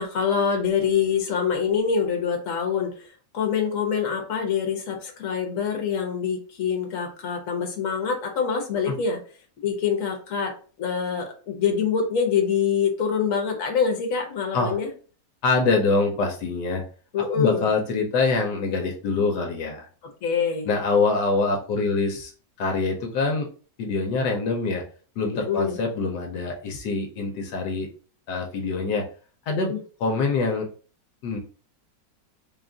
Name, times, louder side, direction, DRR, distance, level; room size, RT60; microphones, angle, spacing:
voice 1, 0.0-9.2 9.6-10.5 10.8-14.9 17.1-17.7 20.2-20.7 25.3-25.8 29.7-29.8, left 6 dB, 55° left, 3 dB, 1.2 m, -25 dB
voice 2, 15.4-16.8 17.2-19.9 20.7-22.3 22.6-23.5 23.8-24.8 25.2-27.9 28.3-29.1 29.5-29.7 30.0-30.7 31.2-31.4, left 3 dB, 75° left, 2 dB, 1.3 m, -24 dB
3.7 x 2.3 x 3.8 m, 0.40 s
omnidirectional pair, 1.9 m